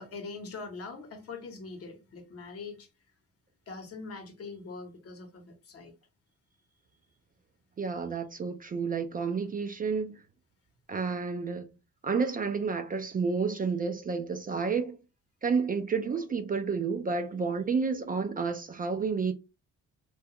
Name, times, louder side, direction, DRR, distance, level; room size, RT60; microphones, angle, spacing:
voice 1, 0.0-2.9 3.7-5.9, left 4 dB, 50° left, 0.9 m, -42 dB
voice 2, 7.8-10.2 10.9-11.7 12.0-15.0 15.4-19.3, right 5 dB, 30° right, 0.3 m, -30 dB
2.2 x 2.2 x 2.8 m
cardioid pair, 90°, 30 cm